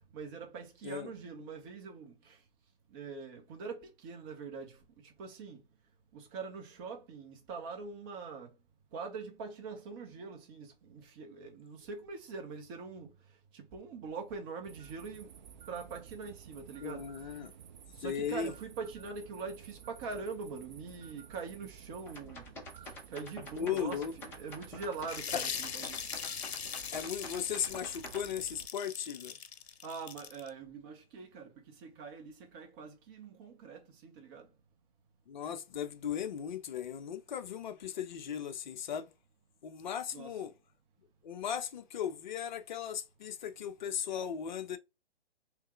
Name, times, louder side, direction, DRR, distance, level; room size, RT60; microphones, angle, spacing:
voice 1, 0.1-2.4 2.9-5.6 6.1-8.5 8.9-13.1 13.5-15.4 15.7-17.4 17.9-22.5 23.1-26.0 29.8-34.5 40.1-40.5, right 4 dB, 20° right, 0.9 m, -43 dB
sound 1, 14.6-28.7, right 8 dB, 45° right, 0.5 m, -53 dB
voice 2, 16.8-17.5 18.0-18.5 23.6-24.1 25.3-25.5 26.9-29.4 35.3-39.1 39.6-40.5 41.2-44.8, left 8 dB, 45° left, 0.6 m, -37 dB
sound 2, 22.1-28.2, left 2 dB, 5° left, 0.6 m, -47 dB
sound 3, 25.0-30.5, left 7 dB, 85° left, 0.7 m, -41 dB
3.6 x 3.2 x 3.1 m
hypercardioid pair, 145°, 31 cm